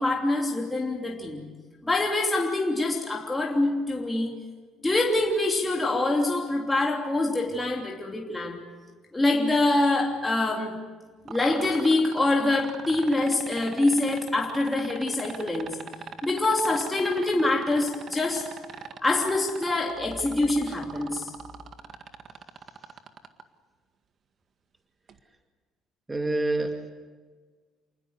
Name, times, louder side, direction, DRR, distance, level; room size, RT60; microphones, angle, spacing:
voice 1, 0.0-1.4 1.8-4.3 4.8-8.6 9.1-10.8 11.2-15.8 16.2-18.5 19.0-21.3, left 2 dB, 10° left, 3.1 m, -25 dB
sound 1, 11.3-23.4 25.1-25.2, right 7 dB, 45° right, 1.8 m, -40 dB
voice 2, 26.1-26.9, right 2 dB, 15° right, 2.3 m, -27 dB
28.5 x 20.0 x 8.3 m
cardioid pair, 120°, 0 cm